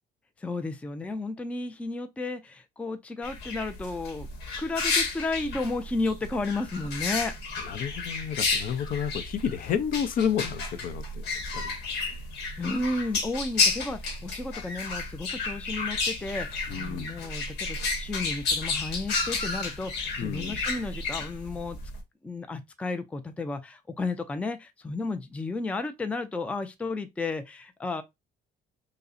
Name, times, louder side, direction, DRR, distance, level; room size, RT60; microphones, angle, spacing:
voice 1, 0.4-4.3 4.6-7.3 12.6-21.8 22.2-28.0, left 3 dB, 10° left, 0.4 m, -33 dB
sound 1, 3.2-22.0, left 4 dB, 80° left, 1.0 m, -32 dB
voice 2, 7.5-11.2 11.5-11.7 16.7-17.1 20.2-20.6, left 8 dB, 55° left, 0.5 m, -30 dB
5.1 x 2.1 x 2.5 m
cardioid pair, 110°, 17 cm